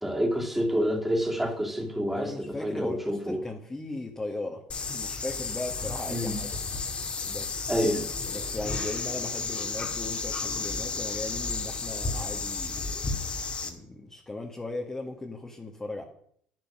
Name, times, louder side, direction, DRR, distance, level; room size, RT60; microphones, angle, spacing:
voice 1, 0.0-3.4 6.1-6.4 7.7-8.1, equal, 5° right, 2.8 m, -28 dB
voice 2, 2.1-6.5 7.2-7.9 8.3-13.1 13.7-16.0, left 2 dB, 15° left, 1.9 m, -38 dB
sound 1, 4.7-13.7, left 4 dB, 35° left, 2.3 m, -32 dB
11.0 x 10.5 x 6.2 m
supercardioid pair, 100°, 3 cm